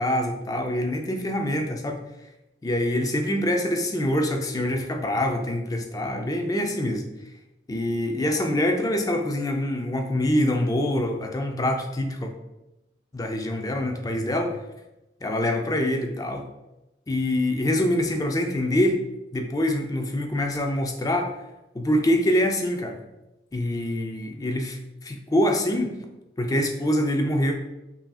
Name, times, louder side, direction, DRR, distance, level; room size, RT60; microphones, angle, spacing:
voice 1, 0.0-2.0 2.6-7.0 7.7-12.3 13.1-14.6 15.2-16.4 17.1-19.0 19.3-21.3 21.7-23.0 23.5-26.0 26.4-27.5, left 1 dB, 20° left, 4 dB, 0.4 m, -25 dB
5.5 x 2.7 x 2.3 m, 0.96 s
head